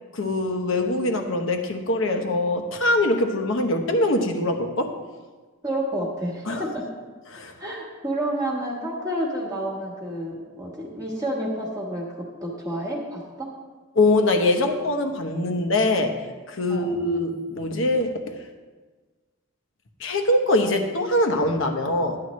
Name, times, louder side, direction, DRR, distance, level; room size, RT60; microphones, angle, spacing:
voice 1, 0.1-4.9 6.4-6.7 7.3-7.5 13.9-18.2 20.0-22.2, left 2 dB, 60° left, 5 dB, 1.0 m, -23 dB
voice 2, 5.6-6.8 7.6-13.5 16.7-17.0, right 1 dB, 15° right, -3 dB, 1.3 m, -30 dB
12.5 x 9.6 x 3.1 m, 1.4 s
head